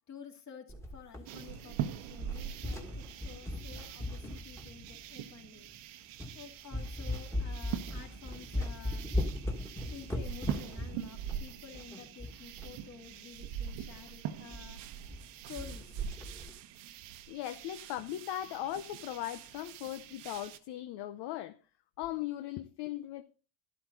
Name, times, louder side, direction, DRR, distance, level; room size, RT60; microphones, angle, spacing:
voice 1, 0.1-5.7 6.3-9.2 9.8-15.1 15.5-16.1, left 7 dB, 35° left, 2.6 m, -51 dB
sound 1, 0.7-1.8 2.1-5.1 5.7-5.8 6.2-6.4 6.7-12.8 13.0-13.1 13.4-13.5 13.9-14.1 14.5-14.6 14.9-15.3 15.6-16.5, left 1 dB, 5° left, 1.9 m, -38 dB
sound 2, 1.3-20.6, right 10 dB, 85° right, 1.4 m, -43 dB
voice 2, 17.3-21.6 22.0-23.2, left 13 dB, 55° left, 0.9 m, -38 dB
12.0 x 12.0 x 3.9 m
cardioid pair, 160°, 47 cm